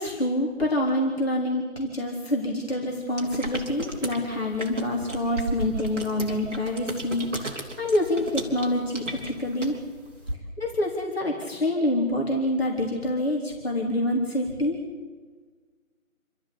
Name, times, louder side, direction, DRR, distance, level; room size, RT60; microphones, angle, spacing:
voice 1, 0.0-9.7 10.6-14.8, left 1 dB, 45° left, -2 dB, 3.6 m, -26 dB
sound 1, 3.1-10.3, right 1 dB, 60° right, 4.0 m, -35 dB
28.0 x 14.0 x 8.6 m, 1.4 s
figure-of-eight pair, 165°, 41 cm